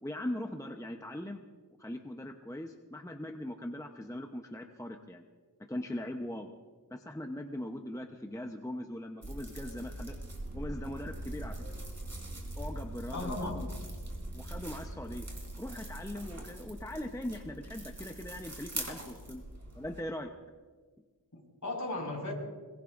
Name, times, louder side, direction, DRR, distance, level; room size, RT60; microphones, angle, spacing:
voice 1, 0.0-1.4 1.8-5.2 5.7-6.5 6.9-10.2 10.5-11.6 12.6-13.7 14.3-15.3 15.6-19.4 19.8-20.3, left 1 dB, 10° left, 3 dB, 0.8 m, -40 dB
sound 1, 9.2-20.0, right 1 dB, 40° right, 4.0 m, -42 dB
voice 2, 13.1-13.7 21.3-22.3, left 2 dB, 45° left, -1 dB, 5.4 m, -36 dB
22.5 x 22.0 x 2.6 m, 1.5 s
wide cardioid pair, 65°, 40 cm